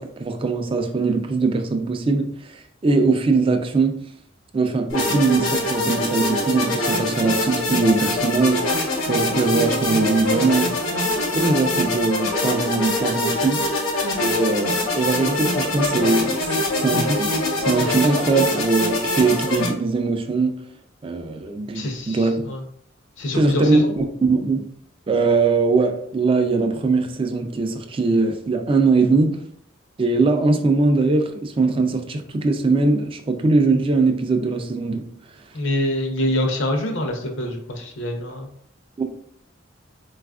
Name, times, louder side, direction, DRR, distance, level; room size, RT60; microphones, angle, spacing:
voice 1, 0.0-4.0 4.5-8.7 9.0-10.8 11.3-13.6 14.2-16.3 16.8-20.6 21.0-22.4 23.4-24.6 25.1-29.4 30.0-35.0 39.0-39.1, right 3 dB, 25° right, 0.3 m, -21 dB
sound 1, 4.9-19.7, left 2 dB, 85° left, 1.0 m, -23 dB
voice 2, 21.7-22.6 23.2-23.9 35.5-38.5, left 1 dB, 65° left, 0.6 m, -25 dB
4.1 x 2.4 x 2.3 m
head